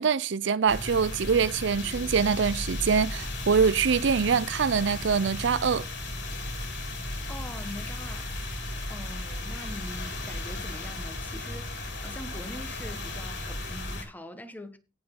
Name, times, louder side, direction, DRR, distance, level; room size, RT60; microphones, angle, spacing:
voice 1, 0.0-5.9, right 6 dB, 65° right, 0.5 m, -24 dB
sound 1, 0.7-14.0, left 1 dB, 65° left, 5.2 m, -35 dB
voice 2, 7.3-8.3 8.9-14.8, left 1 dB, 10° left, 1.3 m, -43 dB
17.5 x 6.0 x 3.8 m
head